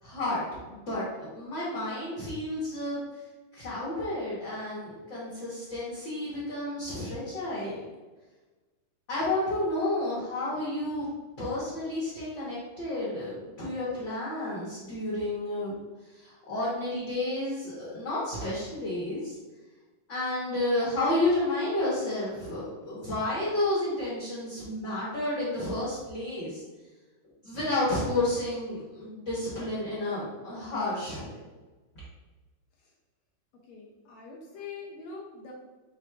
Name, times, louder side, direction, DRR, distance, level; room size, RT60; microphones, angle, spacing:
voice 1, 0.0-3.0 3.5-7.8 9.1-15.8 16.1-19.4 20.1-26.6 27.4-31.4, left 1 dB, 55° left, -8 dB, 1.3 m, -31 dB
voice 2, 33.7-35.5, left 4 dB, 75° left, -2 dB, 1.6 m, -43 dB
5.9 x 3.5 x 2.3 m, 1.2 s
omnidirectional pair, 3.4 m